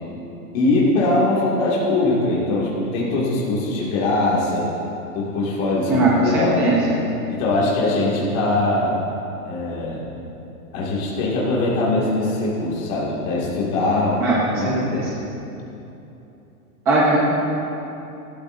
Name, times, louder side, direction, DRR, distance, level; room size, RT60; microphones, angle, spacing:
voice 1, 0.5-4.7 5.1-6.8 7.3-9.0 9.4-10.0 10.7-14.2 14.6-15.1, left 2 dB, 25° left, -5 dB, 2.1 m, -21 dB
voice 2, 5.9-7.0 14.2-15.0 16.9-17.2, right 2 dB, 5° right, -5 dB, 0.6 m, -19 dB
20.0 x 13.5 x 2.6 m, 2.9 s
hypercardioid pair, 180°, 45 cm